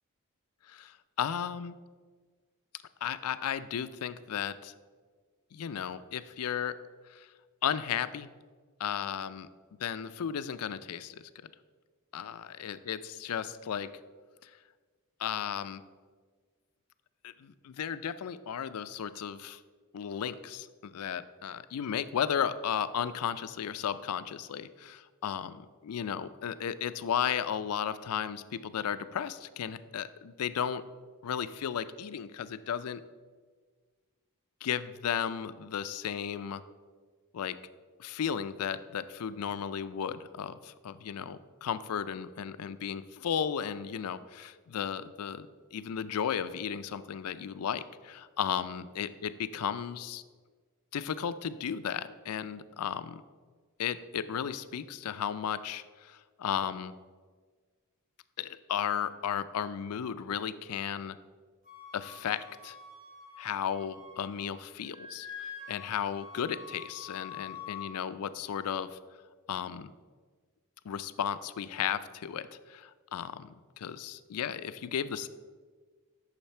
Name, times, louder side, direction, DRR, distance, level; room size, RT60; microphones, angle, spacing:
voice 1, 0.7-1.7 3.0-4.7 5.5-6.7 7.1-7.3 7.6-8.3 8.8-9.5 9.8-11.2 12.1-13.9 14.4-14.5 15.2-15.8 17.2-19.6 19.9-30.8 31.2-33.0 34.6-36.6 37.3-37.6 38.0-50.2 50.9-53.2 53.8-56.9 58.4-61.2 61.9-62.8 63.4-69.0 69.5-69.9 70.8-75.3, left 8 dB, 75° left, 14 dB, 0.4 m, -34 dB
Wind instrument woodwind instrument, 61.7-64.6 64.8-67.9, left 6 dB, 40° right, 1.8 m, -46 dB
8.9 x 6.6 x 4.3 m, 1.5 s
head